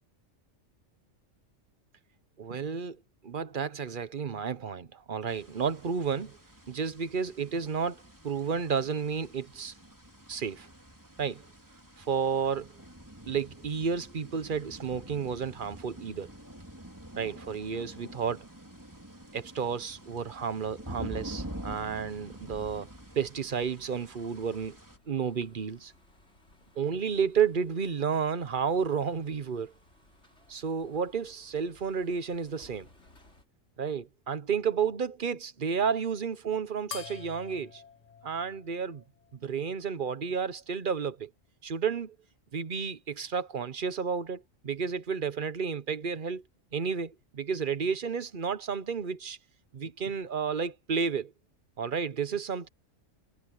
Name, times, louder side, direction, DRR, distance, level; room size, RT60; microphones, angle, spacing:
voice 1, 2.4-3.0 3.2-6.4 6.7-9.7 10.3-10.7 11.2-11.4 12.1-12.7 13.3-16.3 17.2-18.5 19.3-22.9 23.2-24.7 25.1-25.9 26.8-29.7 30.5-32.9 33.8-37.8 38.2-39.0 39.4-41.3 41.6-42.1 42.5-46.4 46.7-49.4 49.7-51.3 51.8-52.7, right 6 dB, 45° right, 1.0 m, -31 dB
sound 1, 5.3-25.0, right 1 dB, 15° right, 3.8 m, -47 dB
sound 2, 22.7-33.4, left 1 dB, 55° left, 6.1 m, -61 dB
sound 3, 36.9-39.7, left 6 dB, 35° left, 0.8 m, -46 dB
omnidirectional pair, 1.4 m